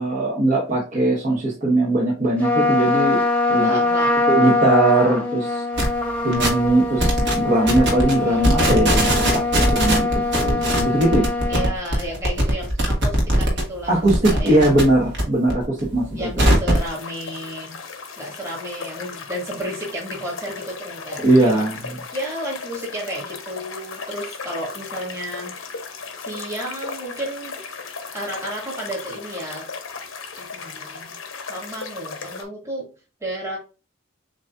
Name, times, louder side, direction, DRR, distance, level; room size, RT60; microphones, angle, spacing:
voice 1, 0.0-3.2 3.5-3.8 4.3-5.6 6.2-10.1 10.3-11.3 13.9-16.5 21.2-21.8, right 1 dB, 40° right, -4 dB, 1.1 m, -20 dB
Trumpet, 2.4-11.7, left 2 dB, 10° left, 1.1 m, -22 dB
voice 2, 3.5-4.2 8.1-8.5 11.5-14.0 14.2-14.8 16.1-17.8 18.2-21.7 22.1-25.6 26.2-27.7 28.1-29.7 30.4-31.2 31.5-32.9 33.2-33.6, right 1 dB, 15° right, -3 dB, 1.8 m, -32 dB
sound 1, 5.8-5.9 6.3-6.7 7.0-7.3 7.7-8.1 8.4-13.6 13.9-15.2 15.5-16.9, right 1 dB, 55° right, 1.5 m, -20 dB
sound 2, 16.7-32.4, left 5 dB, 75° left, 0.9 m, -36 dB
7.2 x 2.7 x 2.3 m, 0.32 s
head